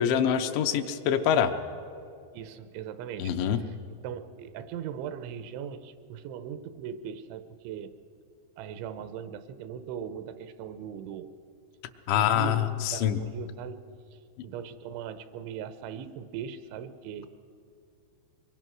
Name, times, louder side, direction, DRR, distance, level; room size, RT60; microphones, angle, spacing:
voice 1, 0.0-1.5 3.2-3.6 12.1-13.2, left 9 dB, 80° left, 7 dB, 3.3 m, -25 dB
voice 2, 2.3-3.3 4.0-8.0 8.6-11.3 12.1-13.8 14.1-14.2 14.4-17.3, right 8 dB, 85° right, 11 dB, 3.2 m, -39 dB
23.5 x 23.0 x 6.3 m, 2.4 s
omnidirectional pair, 5.3 m